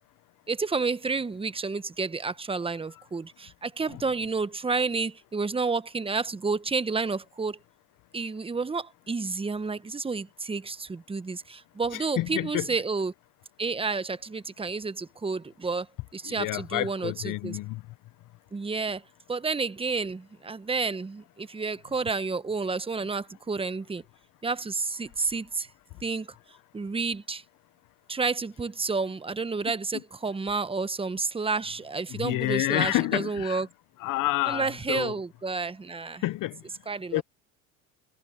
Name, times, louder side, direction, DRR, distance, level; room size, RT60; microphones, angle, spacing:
voice 1, 0.5-7.6 8.1-13.1 13.6-15.9 16.1-17.6 18.5-19.0 19.3-24.0 24.4-25.7 26.0-26.3 26.7-27.4 28.1-33.7 34.5-36.2 36.9-37.2, right 4 dB, 15° right, 1.1 m, -30 dB
voice 2, 11.9-12.7 16.2-17.8 32.1-33.6 34.0-35.1 36.2-36.6 37.1-37.2, left 17 dB, 55° left, 1.1 m, -29 dB
supercardioid pair, 90°, 38 cm